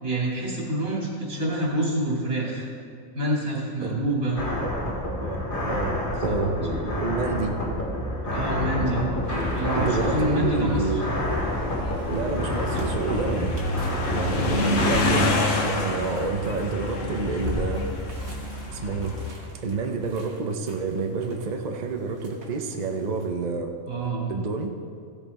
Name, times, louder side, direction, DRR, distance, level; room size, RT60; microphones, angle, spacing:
voice 1, 0.0-2.7 3.1-4.4 6.2-6.4 8.2-9.1 9.5-10.8 14.3-14.8 23.9-24.3, right 1 dB, 85° right, -5 dB, 3.0 m, -27 dB
voice 2, 3.8-4.2 4.6-6.6 7.0-7.6 9.7-11.0 12.1-13.6 14.1-17.8 18.7-19.2 19.6-23.7 24.3-24.7, right 4 dB, 40° right, 3 dB, 0.8 m, -29 dB
sound 1, 4.4-15.2, left 1 dB, 40° left, 1.9 m, -28 dB
sound 2, 9.2-19.3, left 2 dB, 70° left, 1.3 m, -29 dB
sound 3, 12.0-23.3, equal, 55° right, 1.8 m, -41 dB
15.5 x 6.9 x 4.2 m, 2.4 s
omnidirectional pair, 1.4 m